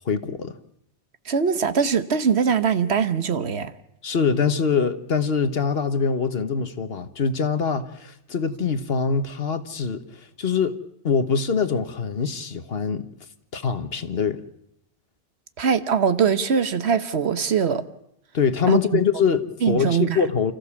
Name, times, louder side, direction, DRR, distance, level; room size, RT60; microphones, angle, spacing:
voice 1, 0.0-0.5 4.0-10.0 10.4-10.8 11.0-13.1 13.5-14.4 18.3-20.5, left 5 dB, 60° left, 1.4 m, -23 dB
voice 2, 1.3-3.8 15.6-17.8 18.7-19.0 19.6-20.2, right 6 dB, 70° right, 1.3 m, -22 dB
29.5 x 14.5 x 7.1 m
omnidirectional pair, 1.1 m